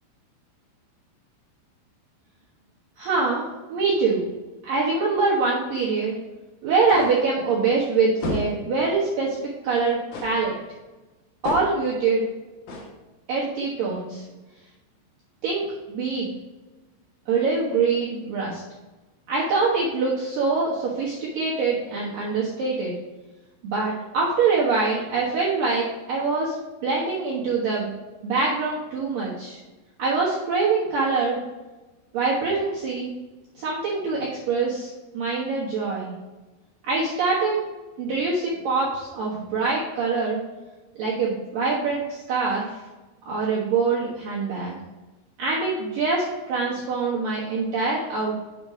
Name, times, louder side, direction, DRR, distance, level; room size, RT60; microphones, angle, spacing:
voice 1, 3.0-4.3 4.6-6.2 6.6-9.4 9.6-10.6 11.4-12.3 13.3-14.2 15.4-16.3 17.3-18.6 19.3-23.0 23.6-26.6 26.8-29.6 30.0-31.4 32.1-33.1 33.6-36.1 36.8-37.6 38.0-40.4 41.0-42.7 43.3-44.7 45.4-48.3, right 4 dB, 70° right, -6 dB, 2.1 m, -24 dB
sound 1, 6.9-7.3 8.2-8.7 10.1-10.5 11.4-11.9 12.7-13.0, left 1 dB, 70° left, 1.9 m, -31 dB
8.2 x 5.2 x 4.9 m, 1.1 s
omnidirectional pair, 5.9 m